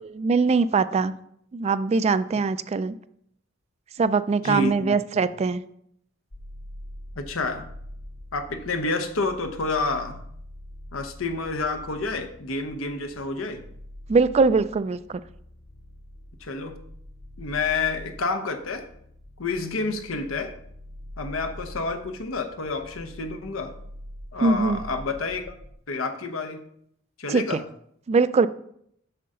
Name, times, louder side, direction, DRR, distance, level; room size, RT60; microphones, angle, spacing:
voice 1, 0.0-1.1 1.5-2.9 4.0-5.6 14.1-15.2 24.4-24.8 27.3-27.6 28.1-28.5, right 4 dB, 30° right, 14 dB, 0.3 m, -22 dB
voice 2, 4.4-5.2 7.2-7.6 8.3-10.2 10.9-13.6 16.4-16.8 17.4-18.9 19.4-20.5 21.2-23.7 24.3-25.4 25.9-26.6 27.2-27.6, left 3 dB, 90° left, 7 dB, 0.9 m, -29 dB
sound 1, 6.3-25.7, left 1 dB, 45° left, 1.1 m, -44 dB
7.8 x 6.6 x 3.7 m, 0.70 s
head